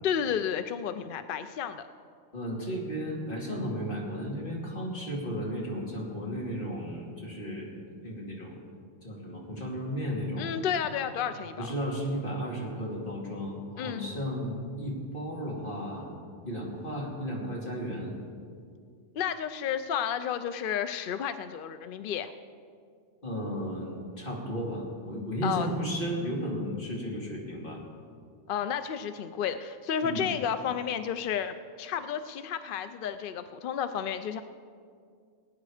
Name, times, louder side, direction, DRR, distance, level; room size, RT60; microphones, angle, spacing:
voice 1, 0.0-1.9 10.4-11.7 13.8-14.1 19.1-22.3 25.4-25.7 28.5-34.4, left 8 dB, 60° left, 10 dB, 0.5 m, -31 dB
voice 2, 2.3-8.6 9.0-10.5 11.6-16.1 16.4-18.1 23.2-27.8 30.0-30.2, equal, 45° left, -3 dB, 2.9 m, -34 dB
19.0 x 9.4 x 4.9 m, 2.2 s
omnidirectional pair, 1.3 m